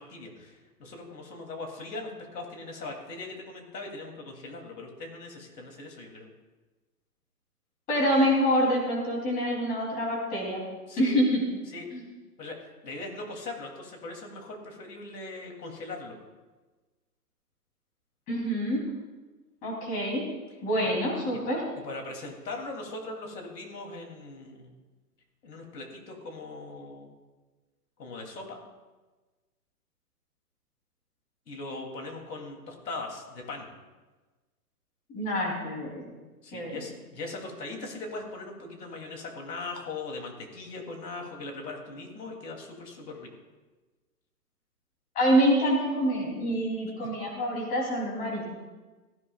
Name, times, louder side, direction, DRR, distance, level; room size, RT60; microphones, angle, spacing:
voice 1, 0.0-6.3 10.9-11.2 11.7-11.9 12.4-16.2 20.8-21.0 21.3-21.4 21.8-24.7 25.4-27.1 28.0-28.6 31.5-33.7 36.4-43.3, left 3 dB, 85° left, 2 dB, 3.2 m, -40 dB
voice 2, 7.9-10.6 11.0-11.4 11.9-12.0 18.3-18.8 19.6-20.2 20.6-21.6 35.1-36.0 36.5-36.8 45.1-48.4, equal, 20° left, -2 dB, 3.3 m, -26 dB
17.5 x 15.0 x 2.4 m, 1.3 s
hypercardioid pair, 155°, 47 cm